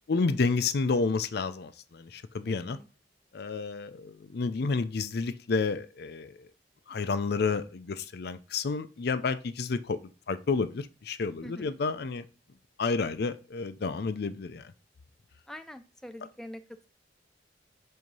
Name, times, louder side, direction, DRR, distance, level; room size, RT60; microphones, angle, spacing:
voice 1, 0.1-2.8 3.3-6.4 6.9-10.0 10.3-12.3 12.8-14.7, left 4 dB, 60° left, 0.5 m, -30 dB
voice 2, 2.5-2.9 11.4-11.7 15.5-16.9, left 1 dB, 5° left, 0.3 m, -45 dB
7.7 x 2.8 x 5.4 m
head